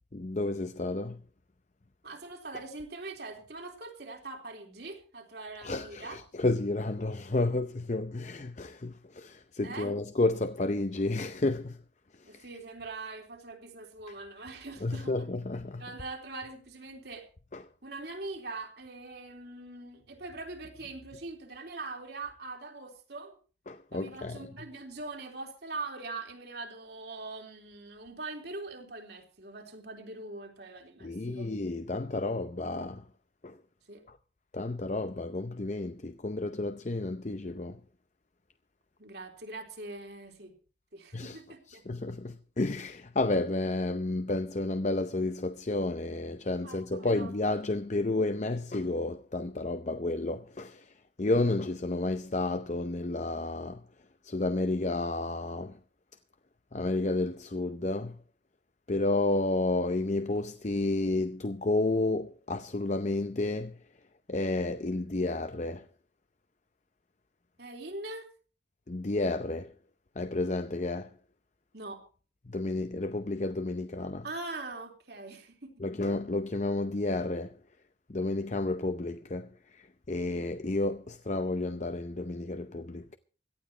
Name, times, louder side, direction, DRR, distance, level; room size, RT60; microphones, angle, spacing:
voice 1, 0.1-1.2 5.6-11.8 12.2-12.4 14.8-15.8 17.5-17.6 23.7-24.5 31.0-33.0 33.4-33.6 34.1-34.2 34.5-37.8 41.1-41.4 41.7-50.9 51.2-53.8 54.2-55.8 56.7-58.2 58.9-63.8 64.3-65.9 68.9-69.7 70.2-71.1 72.5-74.3 75.8-77.6 78.1-83.2, left 2 dB, 40° left, 0.7 m, -31 dB
voice 2, 2.0-6.2 9.6-9.9 12.2-15.1 15.8-17.3 17.8-23.3 23.9-31.5 33.9-34.0 39.0-40.5 40.9-42.0 46.6-47.3 67.6-68.3 71.7-72.0 74.2-75.7, right 3 dB, 60° right, 3.5 m, -42 dB
17.5 x 12.5 x 4.4 m
head